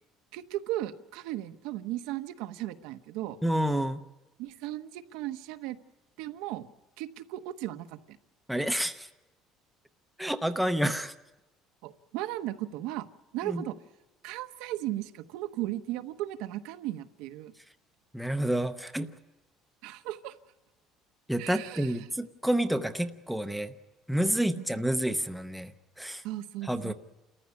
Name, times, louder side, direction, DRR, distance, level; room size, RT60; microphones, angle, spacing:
voice 1, 0.3-3.4 4.4-5.8 6.2-6.7 7.0-8.2 11.8-13.1 13.3-13.7 14.2-17.5 19.8-20.3 21.4-21.9 24.5-24.8 26.2-26.9, right 14 dB, 80° right, 9 dB, 1.1 m, -36 dB
voice 2, 3.4-4.0 8.5-9.1 10.2-11.1 13.4-13.6 18.1-19.1 21.3-23.7 24.1-25.7 26.0-26.2 26.6-26.9, right 1 dB, ahead, 7 dB, 0.7 m, -29 dB
29.5 x 14.5 x 9.6 m, 1.1 s
cardioid pair, 180°, 0 cm